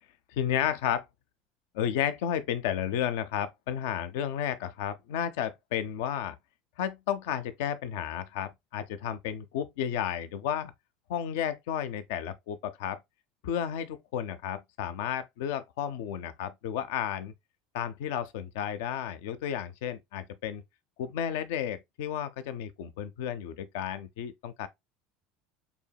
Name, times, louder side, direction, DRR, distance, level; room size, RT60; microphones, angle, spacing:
voice 1, 0.3-1.1 1.7-6.3 6.8-10.7 11.1-13.0 13.4-17.3 17.7-20.6 21.0-24.7, left 9 dB, 80° left, 0.5 m, -32 dB
6.9 x 2.9 x 2.2 m
supercardioid pair, 90°, 0 cm